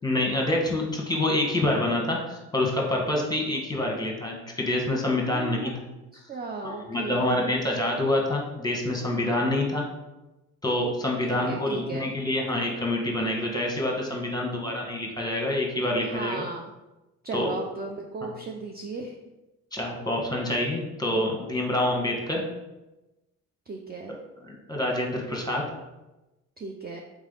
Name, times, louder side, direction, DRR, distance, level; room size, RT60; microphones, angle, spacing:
voice 1, 0.0-5.7 6.6-9.9 10.6-16.4 17.3-17.5 19.7-22.4 24.5-25.6, left 1 dB, 10° left, 0 dB, 1.2 m, -27 dB
voice 2, 5.3-5.7 6.1-7.5 11.2-12.1 16.0-16.7 17.2-19.2 23.7-24.2 26.6-27.0, right 3 dB, 25° right, 1 dB, 0.5 m, -36 dB
3.6 x 3.2 x 3.9 m, 1.0 s
hypercardioid pair, 55°, 43 cm